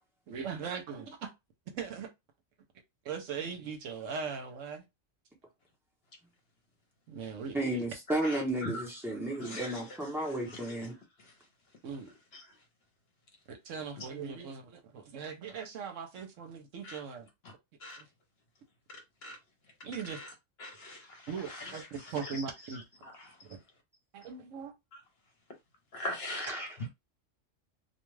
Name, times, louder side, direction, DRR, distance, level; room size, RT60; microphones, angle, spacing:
voice 1, 0.3-1.3 1.7-2.1 3.0-4.8 7.1-7.8 11.8-12.1 13.5-17.3 18.0-18.1 19.8-20.2 21.3-22.8 23.5-23.6 24.1-24.7, right 6 dB, 70° right, 1.0 m, -39 dB
voice 2, 7.5-11.0 26.4-26.7, right 1 dB, ahead, 0.7 m, -33 dB
voice 3, 8.2-8.7 9.4-9.7 16.8-17.0 17.8-18.0 19.2-19.4 20.6-21.2 22.3-22.4 25.9-26.5, left 1 dB, 55° left, 1.0 m, -39 dB
2.5 x 2.3 x 3.1 m
omnidirectional pair, 1.4 m